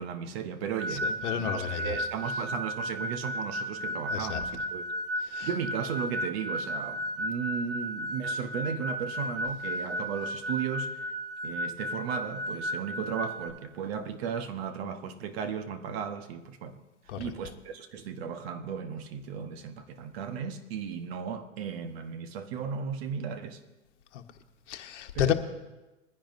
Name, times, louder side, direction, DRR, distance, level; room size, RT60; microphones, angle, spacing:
voice 1, 0.0-4.9 5.4-11.0 11.4-16.8 17.2-23.6 25.1-25.3, right 7 dB, 50° right, 1.3 m, -35 dB
sound 1, 0.8-13.5, equal, 80° right, 4.3 m, -34 dB
voice 2, 0.9-2.1 4.1-4.4 5.3-5.5 17.1-17.2 24.1-24.2 24.7-25.3, left 11 dB, 65° left, 1.2 m, -31 dB
21.5 x 10.0 x 2.7 m
hypercardioid pair, 110°, 38 cm